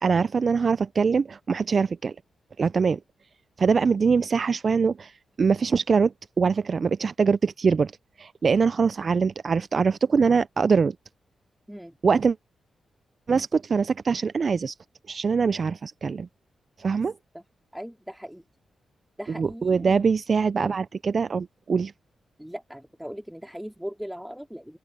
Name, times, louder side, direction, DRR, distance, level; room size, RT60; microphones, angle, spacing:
voice 1, 0.0-2.2 2.6-3.0 3.6-7.9 8.2-11.0 12.0-12.4 13.3-14.7 15.1-16.3 16.8-17.1 19.3-21.9, right 5 dB, 50° right, 0.4 m, -23 dB
voice 2, 17.7-18.4 19.2-20.0 22.4-24.8, equal, 5° right, 2.6 m, -39 dB
open air
cardioid pair, 65°, 0 cm